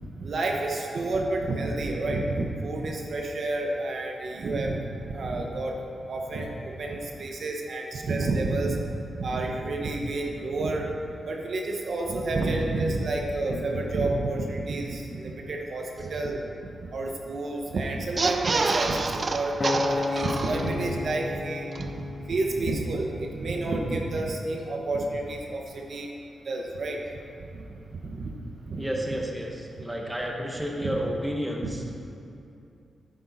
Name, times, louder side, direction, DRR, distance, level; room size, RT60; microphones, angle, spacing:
voice 1, 0.2-5.8 6.1-8.8 9.2-10.9 11.2-16.4 16.8-21.9 22.3-26.1 26.4-27.0 27.5-27.6 28.0-28.3 28.6-28.8 30.8-30.9 31.6-31.7, right 2 dB, 55° right, 1 dB, 1.1 m, -29 dB
sound 1, 18.0-21.0 21.4-21.5 21.7-21.8, right 3 dB, 35° right, 0.4 m, -28 dB
Acoustic guitar, 19.6-24.0 24.6-24.8, left 3 dB, 30° left, 0.3 m, -33 dB
voice 2, 28.8-31.7, equal, 5° right, -1 dB, 1.1 m, -31 dB
10.5 x 9.2 x 4.1 m, 2.7 s
wide cardioid pair, 125°, 0 cm